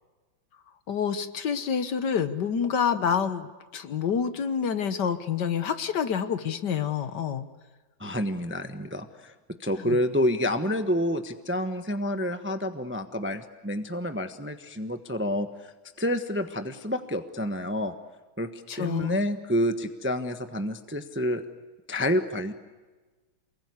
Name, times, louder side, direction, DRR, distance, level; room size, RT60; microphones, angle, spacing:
voice 1, 0.9-7.5 9.8-10.0 18.7-19.2, left 7 dB, 60° left, 11 dB, 1.7 m, -28 dB
voice 2, 8.0-9.3 9.6-15.7 16.0-17.9 18.4-21.4 21.9-22.5, equal, 10° right, 8 dB, 0.8 m, -28 dB
28.5 x 21.0 x 9.7 m, 1.3 s
omnidirectional pair, 2.2 m